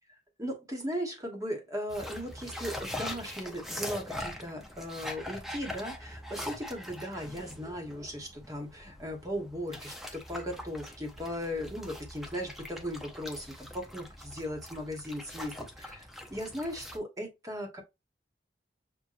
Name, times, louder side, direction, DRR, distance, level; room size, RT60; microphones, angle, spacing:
voice 1, 0.4-17.8, equal, 20° right, 1.3 m, -37 dB
sound 1, 1.9-17.0, left 1 dB, ahead, 0.7 m, -42 dB
6.6 x 2.5 x 2.5 m
head